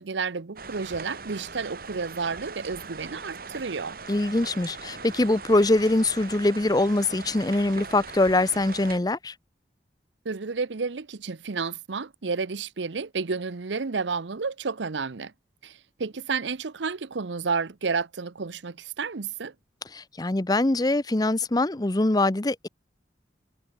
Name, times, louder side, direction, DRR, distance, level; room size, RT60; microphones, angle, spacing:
voice 1, 0.0-4.0 10.2-15.3 15.6-19.5, right 4 dB, 85° right, 0.8 m, -31 dB
sound 1, 0.6-9.0, right 4 dB, 55° right, 3.0 m, -41 dB
voice 2, 4.1-9.3 19.9-22.7, left 2 dB, 20° left, 0.7 m, -23 dB
head